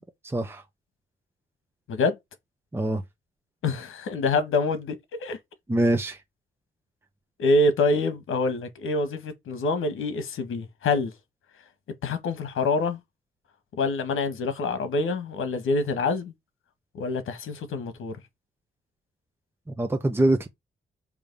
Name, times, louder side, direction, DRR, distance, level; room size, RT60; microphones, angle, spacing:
voice 1, 0.3-0.6 2.7-3.0 5.7-6.2 19.7-20.5, right 1 dB, 10° right, 1.0 m, -24 dB
voice 2, 3.6-5.0 5.2-5.4 7.4-11.1 12.0-13.0 13.7-16.3 16.9-18.1, left 3 dB, 80° left, 1.6 m, -26 dB
7.0 x 3.0 x 5.5 m
cardioid pair, 100°, 21 cm